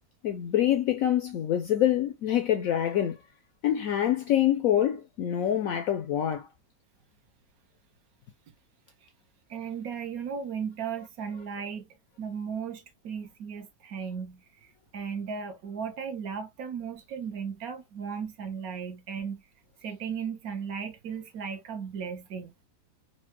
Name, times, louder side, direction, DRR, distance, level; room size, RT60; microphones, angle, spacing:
voice 1, 0.2-3.2 3.6-6.5, left 11 dB, 70° left, 0.8 m, -25 dB
voice 2, 9.5-11.9 12.2-19.4 19.8-22.5, right 6 dB, 65° right, 1.1 m, -36 dB
4.3 x 2.2 x 2.9 m
omnidirectional pair, 1.9 m